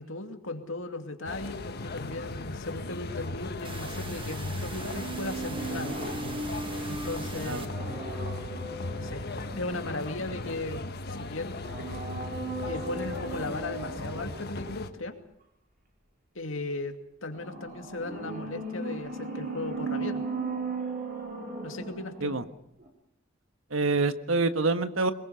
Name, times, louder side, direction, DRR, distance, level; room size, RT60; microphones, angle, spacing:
voice 1, 0.0-6.0 6.9-7.7 8.9-9.3 9.5-11.7 12.7-15.1 16.3-20.2 21.6-22.3, left 2 dB, 75° left, 5 dB, 2.6 m, -37 dB
sound 1, 1.3-14.9, left 2 dB, 55° left, 1.5 m, -37 dB
sound 2, 3.6-7.7, right 3 dB, 25° right, 1.6 m, -42 dB
sound 3, 4.7-10.5 11.5-14.5 17.3-22.5 22.8-22.9, right 2 dB, 50° right, 5.6 m, -37 dB
voice 2, 23.7-25.1, right 3 dB, 85° right, 10 dB, 1.5 m, -26 dB
23.0 x 20.5 x 7.1 m, 0.80 s
head